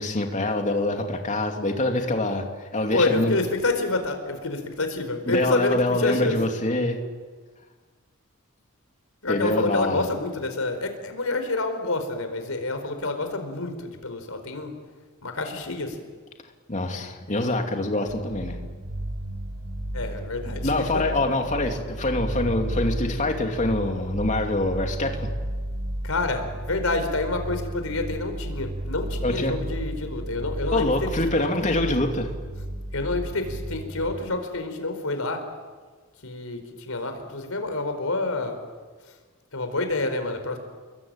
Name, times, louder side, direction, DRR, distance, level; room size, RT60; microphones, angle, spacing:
voice 1, 0.0-3.3 5.3-7.0 9.3-10.1 16.7-18.6 20.6-25.3 29.2-29.6 30.7-32.3, left 2 dB, 35° left, 3 dB, 2.8 m, -25 dB
voice 2, 2.9-6.4 9.2-14.7 15.2-16.0 19.9-21.0 26.0-31.5 32.9-35.4 36.2-38.6 39.5-40.6, left 2 dB, 85° left, 7 dB, 4.6 m, -28 dB
sound 1, 18.1-34.1, right 1 dB, 75° right, 4.8 m, -33 dB
29.5 x 22.5 x 9.0 m, 1.5 s
head